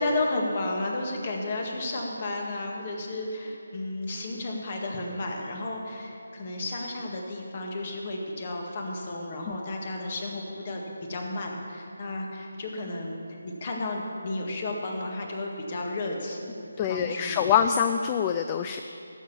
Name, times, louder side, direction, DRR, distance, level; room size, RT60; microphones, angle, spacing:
voice 1, 0.0-13.2 13.4-16.5 16.9-17.5, left 2 dB, 35° left, 1 dB, 1.9 m, -32 dB
voice 2, 16.8-18.8, left 8 dB, 20° left, 7 dB, 0.3 m, -25 dB
14.0 x 7.0 x 7.1 m, 2.7 s
figure-of-eight pair, 160°, 0 cm